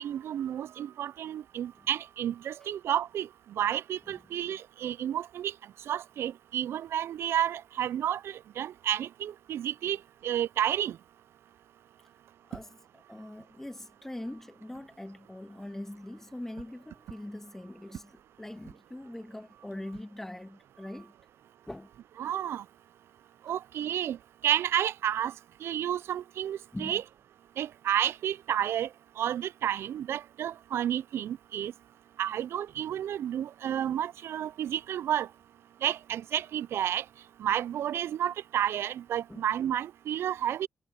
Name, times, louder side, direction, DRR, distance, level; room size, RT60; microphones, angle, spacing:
voice 1, 0.0-3.3 3.6-5.5 5.9-10.0 10.2-11.0 22.2-22.6 23.5-24.2 24.4-25.3 25.6-27.0 27.6-28.9 29.2-31.7 32.2-35.3 35.8-37.0 37.4-40.7, right 10 dB, 75° right, 0.3 m, -31 dB
voice 2, 13.1-18.1 18.4-21.1 21.7-21.9 26.7-27.0 39.3-39.4, left 1 dB, 10° left, 2.1 m, -42 dB
cardioid pair, 125°, 4 cm